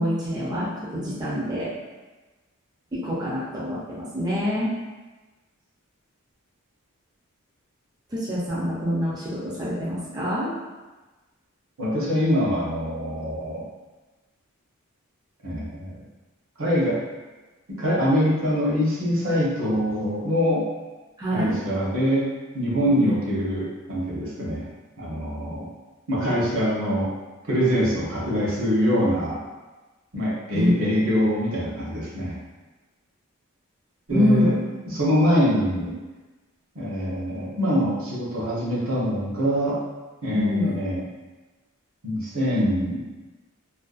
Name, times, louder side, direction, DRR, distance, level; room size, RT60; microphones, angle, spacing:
voice 1, 0.0-1.7 2.9-4.7 8.1-10.5 21.2-21.6 22.9-23.1 30.5-30.7 34.1-34.5 40.3-40.7, equal, 20° right, -9 dB, 0.4 m, -25 dB
voice 2, 11.8-13.6 15.4-15.9 16.6-17.0 17.7-20.6 21.3-22.3 22.5-24.7 25.0-25.7 26.1-27.1 27.5-29.4 30.1-32.4 34.1-34.5 34.9-35.9 36.7-39.8 40.2-41.1 42.0-43.0, equal, 65° right, -6 dB, 0.7 m, -24 dB
2.5 x 2.1 x 2.3 m, 1.2 s
head